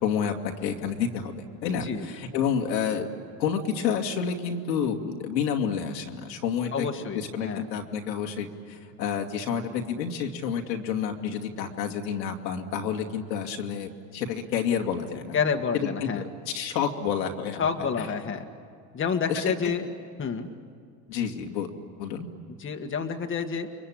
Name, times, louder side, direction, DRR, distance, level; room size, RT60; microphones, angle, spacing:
voice 1, 0.0-3.1 3.4-6.9 7.1-15.4 15.7-17.6 18.0-18.1 19.3-19.4 21.1-21.7 22.0-22.3, left 7 dB, 85° left, 2 dB, 2.3 m, -29 dB
voice 2, 6.7-7.6 15.3-16.2 17.6-18.4 18.9-19.9 20.2-20.5 22.6-23.7, left 6 dB, 25° left, 4 dB, 1.7 m, -28 dB
30.0 x 23.0 x 8.7 m, 2.1 s
hypercardioid pair, 95°, 50 cm